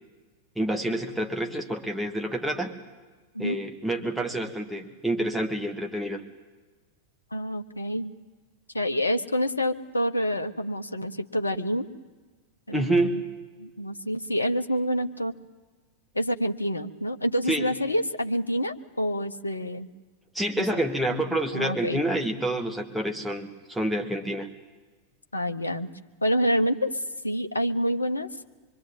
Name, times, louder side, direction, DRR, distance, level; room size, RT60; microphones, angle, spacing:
voice 1, 0.6-2.8 3.4-6.2 12.7-13.2 17.5-17.7 20.3-24.5, right 1 dB, 5° right, 1 dB, 2.4 m, -28 dB
voice 2, 7.3-8.1 8.7-11.9 12.7-13.2 13.6-15.3 16.1-19.9 20.7-20.8 21.3-22.0 25.3-25.9 26.2-28.3, equal, 80° left, 8 dB, 1.2 m, -27 dB
25.0 x 23.5 x 9.4 m, 1.3 s
figure-of-eight pair, 90°, 0 cm